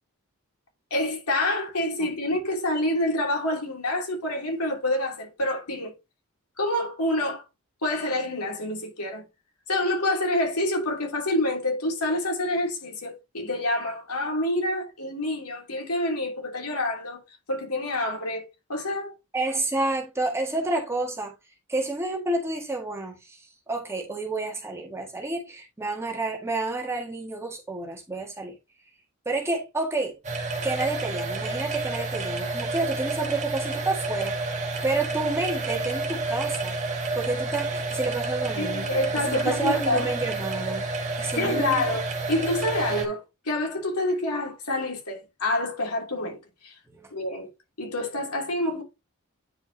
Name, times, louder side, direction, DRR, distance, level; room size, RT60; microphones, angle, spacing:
voice 1, 0.9-5.9 6.6-7.4 7.8-9.2 9.7-17.2 17.5-18.4 18.7-19.1 38.6-40.1 41.4-46.7 47.1-47.5 47.8-48.8, left 1 dB, 90° left, 3.1 m, -27 dB
voice 2, 19.3-21.3 21.7-28.6 29.3-30.1 30.6-36.8 37.2-38.9 39.2-41.8 46.9-47.1, right 2 dB, 10° right, 1.8 m, -30 dB
sound 1, 30.2-43.1, right 3 dB, 30° right, 1.8 m, -30 dB
9.6 x 5.2 x 2.8 m
head